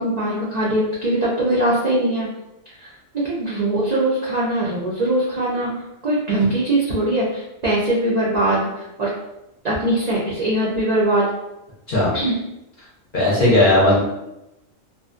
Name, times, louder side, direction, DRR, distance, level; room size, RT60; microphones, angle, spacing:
voice 1, 0.0-2.3 2.8-5.7 6.0-9.1 9.6-11.3 12.1-12.3, right 1 dB, 70° right, -6 dB, 0.4 m, -21 dB
voice 2, 13.1-14.0, left 1 dB, 50° left, -6 dB, 0.6 m, -16 dB
2.5 x 2.1 x 2.4 m, 0.90 s
omnidirectional pair, 1.4 m